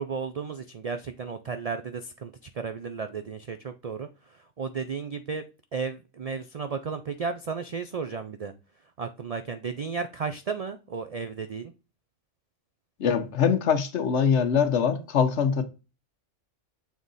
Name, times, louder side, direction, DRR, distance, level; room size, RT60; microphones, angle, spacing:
voice 1, 0.0-5.4 5.7-8.5 9.0-11.7, right 5 dB, 65° right, 0.3 m, -34 dB
voice 2, 13.0-15.6, left 7 dB, 70° left, 1.1 m, -23 dB
7.1 x 3.7 x 4.0 m
omnidirectional pair, 1.3 m